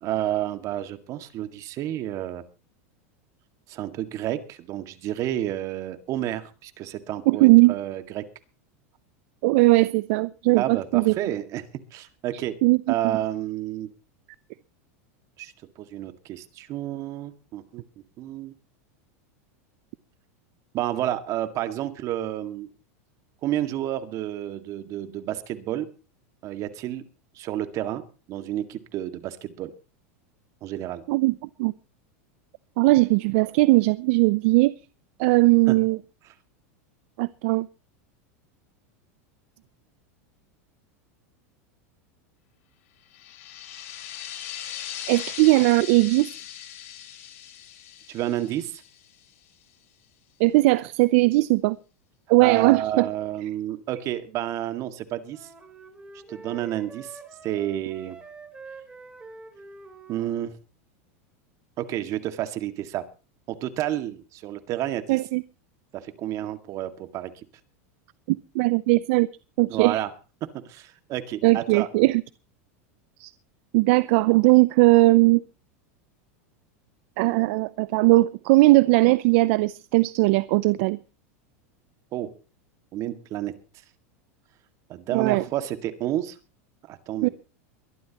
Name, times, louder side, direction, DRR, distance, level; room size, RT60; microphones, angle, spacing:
voice 1, 0.0-2.4 3.7-8.2 10.6-12.6 12.9-13.9 15.4-15.5 15.8-17.8 18.2-18.5 20.7-22.7 23.4-25.9 26.4-27.0 27.4-29.7 30.6-31.0 35.7-35.8 48.1-48.8 52.4-55.5 56.3-58.2 60.1-60.5 61.8-63.0 63.5-65.2 65.9-67.3 69.7-70.1 70.5-71.9 82.1-82.3 82.9-83.5 84.9-86.4 86.9-87.3, right 12 dB, 45° right, 2.0 m, -30 dB
voice 2, 7.3-7.7 9.4-11.1 12.6-12.8 31.1-31.3 31.6-31.7 32.8-34.7 35.2-36.0 37.2-37.7 45.1-46.3 50.4-51.8 52.3-53.1 65.1-65.4 68.3-69.3 69.6-70.0 71.4-72.2 73.2-73.3 73.7-75.4 77.2-81.0 85.1-85.4 87.2-87.3, right 21 dB, 60° right, 0.6 m, -19 dB
sound 1, 43.1-49.4, left 10 dB, 75° left, 4.9 m, -39 dB
sound 2, 55.3-60.5, right 3 dB, 15° right, 3.7 m, -46 dB
23.0 x 12.5 x 3.0 m
supercardioid pair, 125°, 8 cm